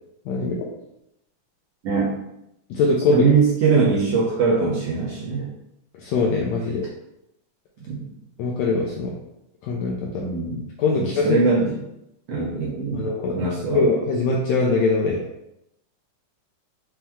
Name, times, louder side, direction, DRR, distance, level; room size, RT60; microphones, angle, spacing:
voice 1, 0.3-0.7 2.7-3.2 5.9-6.9 8.4-9.1 9.6-10.3 10.8-11.4 12.9-13.5 13.7-15.2, left 3 dB, 85° left, -2 dB, 1.6 m, -22 dB
voice 2, 1.8-2.2 3.1-5.5 7.9-8.0 10.2-10.6 10.9-11.8 12.3-13.8, right 4 dB, 65° right, -6 dB, 1.6 m, -22 dB
5.9 x 2.1 x 3.5 m, 0.83 s
omnidirectional pair, 3.6 m